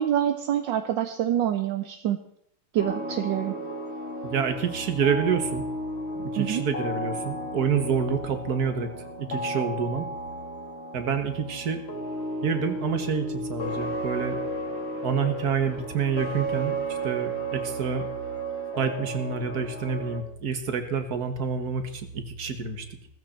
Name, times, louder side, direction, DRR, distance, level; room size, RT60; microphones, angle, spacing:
voice 1, 0.0-2.2 2.7-3.5 6.4-6.6, right 10 dB, 75° right, 8 dB, 1.4 m, -26 dB
sound 1, 2.8-20.2, right 1 dB, 35° left, 1.7 m, -33 dB
voice 2, 4.2-5.6 6.2-8.9 9.2-10.1 10.9-11.8 12.4-14.4 15.0-18.1 18.8-22.9, right 6 dB, 55° right, 8 dB, 1.9 m, -28 dB
16.0 x 14.5 x 4.4 m, 0.71 s
omnidirectional pair, 2.1 m